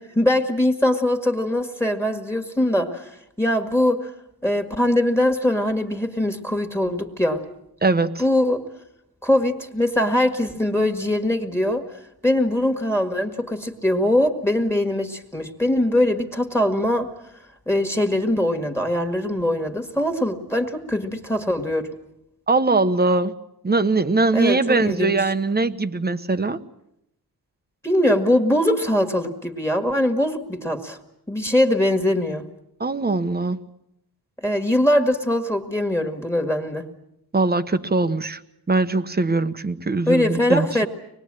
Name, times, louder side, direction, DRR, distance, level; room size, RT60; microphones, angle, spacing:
voice 1, 0.0-3.1 3.4-4.1 4.4-7.4 8.2-8.6 9.2-11.8 12.2-17.1 17.7-21.9 24.3-25.1 27.8-31.0 31.3-32.4 34.4-36.9 40.1-40.9, left 1 dB, 5° left, 4 dB, 1.9 m, -22 dB
voice 2, 7.8-8.1 22.5-23.3 23.6-26.6 32.8-33.6 37.3-38.4 38.7-40.7, right 3 dB, 25° right, 11 dB, 1.0 m, -21 dB
25.0 x 20.5 x 8.9 m, 0.80 s
wide cardioid pair, 160°, 40 cm